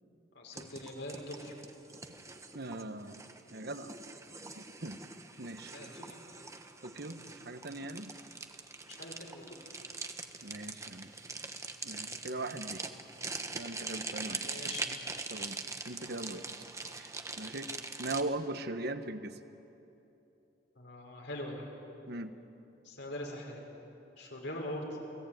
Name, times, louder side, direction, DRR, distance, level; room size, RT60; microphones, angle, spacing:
voice 1, 0.3-1.5 5.7-6.0 8.9-9.6 14.1-14.9 20.8-21.6 22.8-23.6 24.2-24.8, left 1 dB, 70° left, 0 dB, 5.6 m, -42 dB
sound 1, 0.5-18.2, right 3 dB, 15° right, 1.3 m, -43 dB
voice 2, 2.5-3.2 3.5-3.9 4.4-5.0 5.4-5.7 6.8-8.1 10.4-11.1 11.8-12.8 13.5-14.7 15.3-16.6 16.9-17.7 18.0-19.4 22.1-22.3, right 2 dB, 60° right, 9 dB, 1.2 m, -40 dB
29.5 x 18.5 x 9.2 m, 3.0 s
head